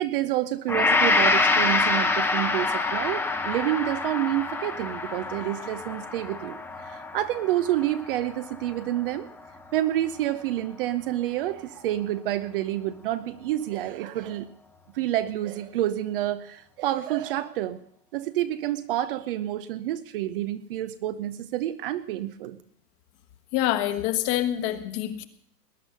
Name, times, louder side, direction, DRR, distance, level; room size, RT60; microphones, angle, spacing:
voice 1, 0.0-9.3 9.7-14.5 14.9-17.8 18.1-22.6, right 13 dB, 35° right, 12 dB, 0.7 m, -28 dB
Gong, 0.7-9.0 9.4-9.6, left 3 dB, 5° left, 0.8 m, -26 dB
voice 2, 23.5-25.3, left 13 dB, 35° left, 10 dB, 1.4 m, -26 dB
19.5 x 9.8 x 6.6 m, 0.67 s
hypercardioid pair, 135°, 49 cm